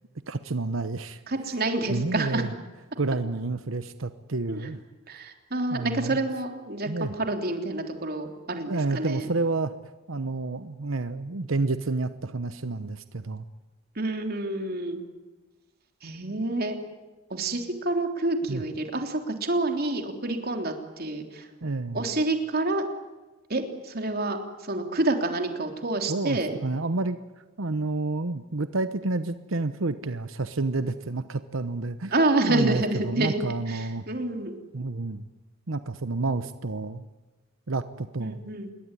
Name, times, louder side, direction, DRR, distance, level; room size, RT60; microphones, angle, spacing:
voice 1, 0.3-1.2 1.9-2.5 3.0-4.8 5.7-6.2 6.9-7.1 8.7-9.7 10.1-13.4 18.5-18.6 21.6-22.1 26.1-27.2 27.6-32.1 32.5-34.1 34.7-35.3 35.7-37.0 37.7-38.4, right 3 dB, 85° right, 11 dB, 1.0 m, -29 dB
voice 2, 1.3-2.4 4.5-4.7 5.1-9.3 13.9-15.0 16.0-16.8 17.3-21.5 21.9-22.9 23.5-24.4 24.6-26.6 32.1-33.4 33.7-34.6 38.2-38.7, right 2 dB, 50° right, 5 dB, 3.5 m, -28 dB
27.0 x 22.0 x 10.0 m, 1.2 s
head